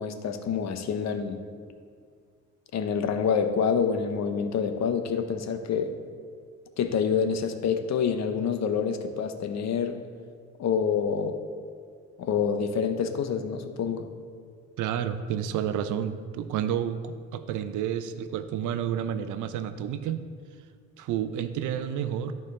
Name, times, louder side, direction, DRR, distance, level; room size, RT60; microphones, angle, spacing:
voice 1, 0.0-1.4 2.7-5.9 6.8-10.0 10.6-11.4 12.2-14.1, left 6 dB, 60° left, 8 dB, 0.8 m, -27 dB
voice 2, 14.8-20.2 21.0-22.3, right 9 dB, 80° right, 11 dB, 0.6 m, -30 dB
13.5 x 4.5 x 3.3 m, 2.1 s
cardioid pair, 90°, 30 cm